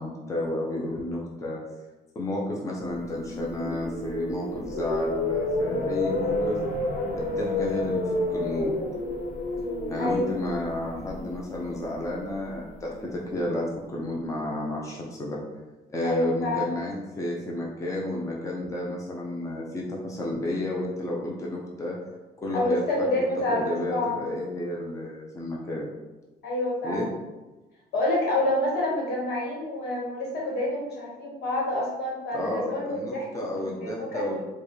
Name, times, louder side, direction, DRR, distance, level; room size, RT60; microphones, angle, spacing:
voice 1, 0.0-1.6 2.1-6.6 7.1-8.0 8.3-8.8 9.9-15.4 15.9-22.0 22.4-23.1 23.5-25.9 26.8-27.1 32.3-34.4, left 1 dB, 20° left, -3 dB, 0.7 m, -31 dB
sound 1, 3.0-13.1, left 2 dB, 50° left, 0.8 m, -30 dB
voice 2, 10.0-10.4 16.0-16.7 22.5-24.2 26.4-27.1 27.9-34.4, left 1 dB, 70° left, -3 dB, 1.4 m, -28 dB
4.6 x 2.3 x 3.2 m, 1.1 s
cardioid pair, 110°, 17 cm